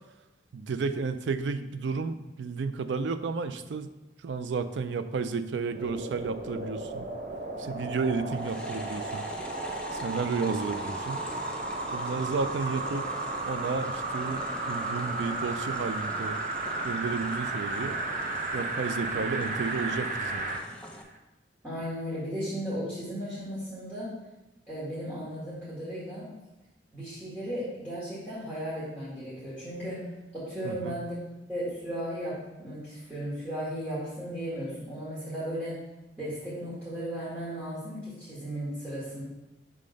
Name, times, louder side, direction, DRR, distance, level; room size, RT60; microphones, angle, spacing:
voice 1, 0.5-3.9 4.2-7.1 7.6-9.3 9.9-11.2 11.9-13.1 13.4-14.4 14.7-16.4 16.8-18.0 18.5-20.5 30.6-30.9, right 4 dB, 85° right, 11 dB, 0.4 m, -32 dB
sound 1, 5.7-20.6 21.1-21.2, right 2 dB, 45° right, 0.6 m, -34 dB
sound 2, 8.3-21.0, left 1 dB, 5° left, 0.6 m, -45 dB
voice 2, 21.6-24.1 24.7-26.3 26.9-30.1 30.3-31.2 31.5-35.8 36.2-39.2, equal, 10° right, -11 dB, 1.9 m, -35 dB
5.6 x 3.7 x 5.1 m, 1.0 s
head